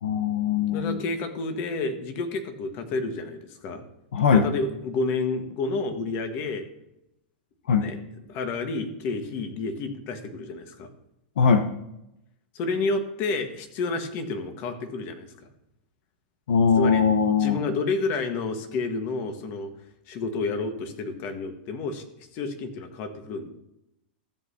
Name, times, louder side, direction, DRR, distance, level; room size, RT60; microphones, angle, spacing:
voice 1, 0.0-1.0 4.1-4.5 7.7-7.9 11.4-11.7 16.5-17.6, left 6 dB, 80° left, 8 dB, 0.8 m, -21 dB
voice 2, 0.7-3.8 4.3-6.7 7.8-8.0 8.3-10.9 12.5-15.3 16.7-19.7 20.1-22.0 22.3-23.5, left 3 dB, 45° left, 7 dB, 1.4 m, -30 dB
14.5 x 7.9 x 2.8 m, 0.84 s
hypercardioid pair, 130°, 5 cm